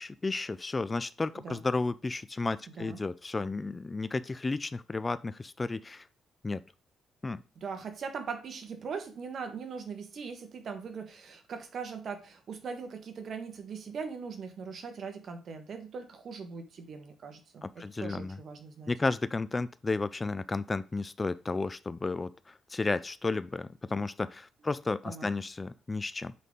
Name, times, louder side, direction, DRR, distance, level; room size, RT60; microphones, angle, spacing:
voice 1, 0.0-6.1 6.4-6.6 7.2-7.4 17.6-18.4 18.9-26.3, left 3 dB, 25° left, 16 dB, 0.3 m, -33 dB
voice 2, 7.5-18.9 25.0-25.3, right 5 dB, 55° right, 6 dB, 1.5 m, -40 dB
8.2 x 4.0 x 3.7 m, 0.34 s
cardioid pair, 90°, 0 cm